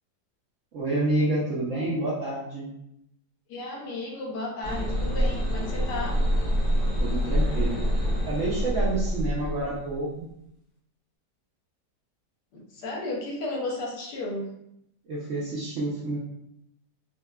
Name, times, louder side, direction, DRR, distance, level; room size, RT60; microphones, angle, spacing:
voice 1, 0.7-2.7 7.0-7.8 8.3-10.3 15.1-16.2, right 2 dB, 60° right, -6 dB, 0.8 m, -28 dB
voice 2, 3.5-6.2 12.5-14.5, left 2 dB, 80° left, -2 dB, 1.4 m, -33 dB
sound 1, 4.6-10.0, equal, 50° left, 1.3 m, -26 dB
4.4 x 2.1 x 2.3 m, 0.78 s
omnidirectional pair, 1.8 m